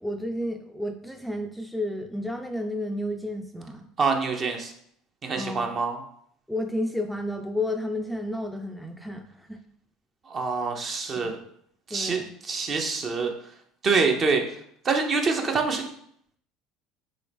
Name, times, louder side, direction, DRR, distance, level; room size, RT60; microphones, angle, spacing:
voice 1, 0.0-3.9 5.3-5.7 6.5-9.6 11.2-11.4 11.9-12.3, left 1 dB, ahead, 4 dB, 0.4 m, -31 dB
voice 2, 4.0-4.7 5.2-6.0 10.3-11.4 11.9-13.3 13.8-14.4 14.8-15.9, right 4 dB, 40° right, 4 dB, 0.7 m, -25 dB
3.8 x 2.9 x 3.4 m, 0.69 s
hypercardioid pair, 70°, 0 cm